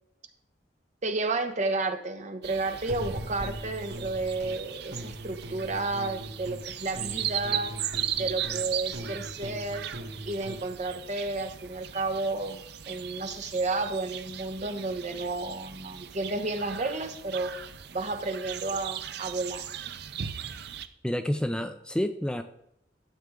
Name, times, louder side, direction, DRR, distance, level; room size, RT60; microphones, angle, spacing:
voice 1, 1.0-7.7 8.2-9.9 10.2-17.5 17.9-19.6, right 2 dB, 40° right, 6 dB, 1.1 m, -32 dB
sound 1, 2.4-20.9, right 10 dB, 65° right, 0.6 m, -38 dB
sound 2, 2.9-4.6 4.9-6.7 6.9-10.7, equal, 85° right, 2.3 m, -40 dB
voice 2, 21.0-22.4, equal, 5° left, 8 dB, 0.4 m, -29 dB
12.5 x 7.8 x 3.7 m, 0.76 s
head